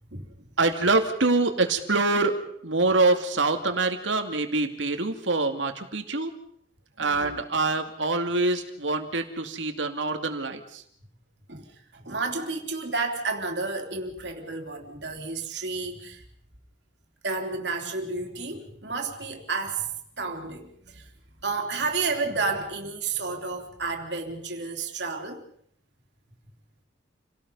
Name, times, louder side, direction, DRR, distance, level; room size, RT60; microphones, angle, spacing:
voice 1, 0.6-2.4 2.6-6.3 7.0-10.8, right 3 dB, 85° right, 6 dB, 2.5 m, -25 dB
voice 2, 7.0-7.4 11.5-11.7 11.9-16.2 17.2-19.9 20.2-21.1 21.4-25.4, right 4 dB, 65° right, 3 dB, 3.4 m, -31 dB
29.0 x 18.0 x 5.5 m, 0.65 s
head